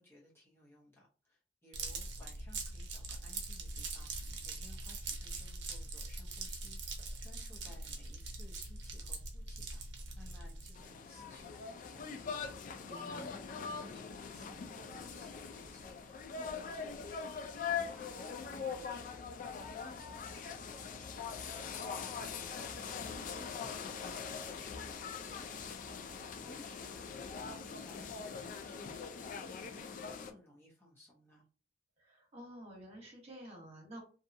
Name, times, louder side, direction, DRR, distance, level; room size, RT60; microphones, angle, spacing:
voice 1, 0.0-9.8 10.1-12.7 13.0-18.1 18.4-26.1 26.4-31.4, left 1 dB, 15° left, -5 dB, 0.7 m, -60 dB
sound 1, 1.7-10.9, right 3 dB, 70° right, 0.6 m, -42 dB
sound 2, 10.8-30.3, left 6 dB, 45° left, 0.3 m, -42 dB
voice 2, 12.8-13.3 32.0-34.0, right 1 dB, 35° right, -2 dB, 1.2 m, -50 dB
2.7 x 2.3 x 2.6 m, 0.38 s
head